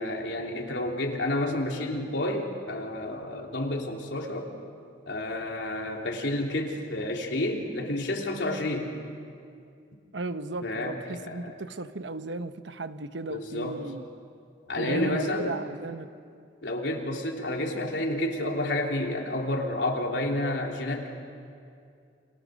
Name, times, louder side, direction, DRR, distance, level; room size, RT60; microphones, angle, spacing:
voice 1, 0.0-4.5 5.1-8.9 10.6-10.9 11.3-11.5 13.3-13.8 14.7-15.5 16.6-21.1, left 1 dB, 90° left, 3.4 m, -30 dB
voice 2, 10.1-14.0 14.8-16.1, right 2 dB, 85° right, 1.0 m, -35 dB
30.0 x 26.5 x 6.5 m
head